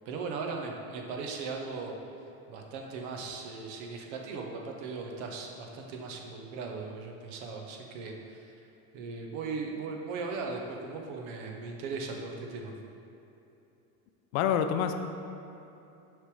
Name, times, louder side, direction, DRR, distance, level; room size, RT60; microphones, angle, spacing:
voice 1, 0.0-2.0 2.5-8.5 8.9-12.7, right 4 dB, 75° right, 1 dB, 0.9 m, -38 dB
voice 2, 14.3-14.9, left 8 dB, 80° left, 7 dB, 0.6 m, -26 dB
6.3 x 3.4 x 4.7 m, 2.9 s
supercardioid pair, 130°, 40 cm